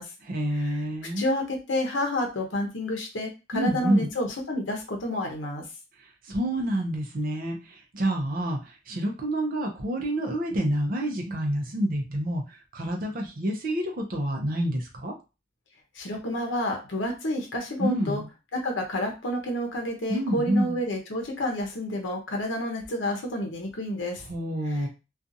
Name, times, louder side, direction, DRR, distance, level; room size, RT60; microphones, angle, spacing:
voice 1, 0.2-1.3 3.5-4.1 6.3-12.4 12.7-15.1 17.8-18.3 20.1-20.8 24.3-24.9, right 1 dB, 50° right, 1 dB, 0.6 m, -28 dB
voice 2, 1.2-5.6 15.9-18.2 18.5-24.2 24.7-24.9, left 1 dB, 75° left, 2 dB, 0.7 m, -30 dB
2.5 x 2.3 x 2.6 m, 0.29 s
head